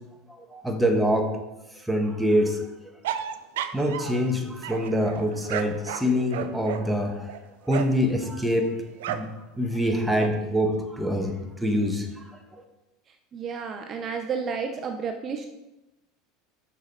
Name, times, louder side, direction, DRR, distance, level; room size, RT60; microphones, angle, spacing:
voice 1, 0.3-1.3 1.7-2.7 3.7-7.3 7.6-8.7 9.1-12.3 12.5-12.6, equal, 5° right, 3 dB, 1.3 m, -25 dB
sound 1, 3.0-4.3 4.6-8.0 9.0-9.4 9.7-10.3, right 10 dB, 85° right, 0.5 m, -33 dB
voice 2, 13.3-15.5, right 6 dB, 35° right, 5 dB, 0.7 m, -31 dB
8.5 x 6.5 x 4.1 m, 0.99 s
supercardioid pair, 115°, 0 cm